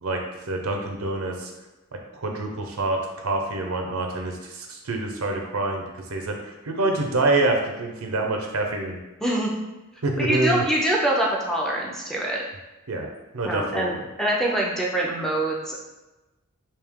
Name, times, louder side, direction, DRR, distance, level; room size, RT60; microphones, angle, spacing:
voice 1, 0.0-1.5 2.1-9.0 10.0-10.6 12.9-13.1 13.3-13.9, right 2 dB, 85° right, 2 dB, 0.7 m, -26 dB
voice 2, 9.2-9.5 10.2-12.4 13.4-15.8, right 1 dB, ahead, -4 dB, 0.5 m, -24 dB
3.3 x 2.7 x 3.5 m, 1.1 s
head